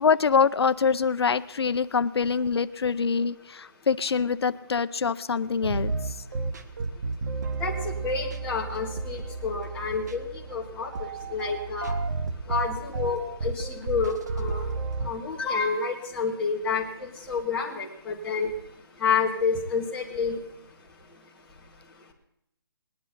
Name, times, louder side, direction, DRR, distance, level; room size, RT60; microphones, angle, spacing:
voice 1, 0.0-5.9, left 5 dB, 90° left, 13 dB, 0.5 m, -24 dB
sound 1, 5.6-15.1, right 4 dB, 45° right, 0.9 m, -32 dB
voice 2, 8.0-10.9 11.3-11.9 12.5-14.6 15.0-18.5 19.0-20.4, left 5 dB, 5° left, -5 dB, 1.5 m, -29 dB
20.0 x 10.5 x 4.1 m, 0.77 s
hypercardioid pair, 165°, 13 cm